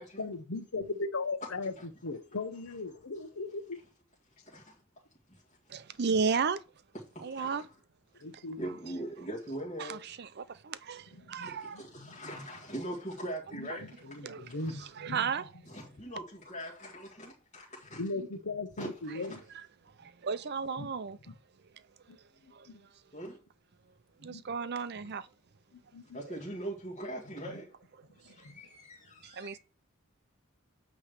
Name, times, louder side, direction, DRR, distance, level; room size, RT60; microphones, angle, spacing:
voice 1, 0.2-3.8 8.1-8.7 11.1-11.5 12.0-12.4 13.5-15.3 15.8-16.0 17.9-19.4 20.8-20.9 21.3-21.4 22.1-22.2 22.4-22.8 24.2-24.4 25.7-26.2 27.4-27.5 28.4-28.5, left 3 dB, 80° left, 0.9 m, -39 dB
voice 2, 4.4-4.8 5.3-5.4 7.1-7.6 8.6-10.1 11.4-14.7 15.7-18.0 18.8-18.9 19.2-19.3 23.1-23.4 26.1-27.7 28.2-29.6, right 1 dB, 35° left, 2.0 m, -42 dB
voice 3, 5.7-6.6 7.2-7.7 9.8-11.8 13.7-13.8 14.2-14.5 14.8-15.5 20.0-21.2 22.5-22.7 24.2-25.3 29.2-29.6, right 5 dB, 55° right, 0.5 m, -34 dB
8.8 x 3.2 x 6.6 m
head